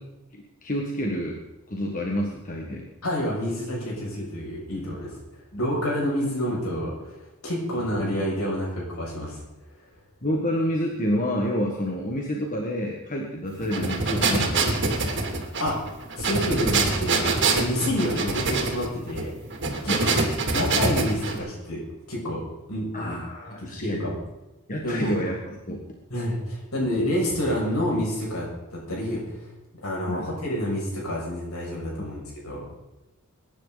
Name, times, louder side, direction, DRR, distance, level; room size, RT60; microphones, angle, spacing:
voice 1, 0.3-1.4 1.7-2.8 7.8-7.9 10.2-15.0 17.8-17.9 19.9-20.0 22.9-24.0 24.7-25.8 30.1-30.3, equal, 35° left, 0 dB, 1.8 m, -28 dB
voice 2, 2.7-5.1 5.6-9.4 15.6-15.8 16.2-19.3 19.8-20.1 20.5-21.8 22.1-22.4 22.7-23.2 23.6-24.2 24.8-25.3 26.1-29.3 29.8-32.7, equal, 70° left, -3 dB, 6.7 m, -28 dB
sound 1, 13.6-21.4, right 3 dB, 55° right, 2.8 m, -25 dB
22.0 x 10.5 x 4.1 m, 1.0 s
head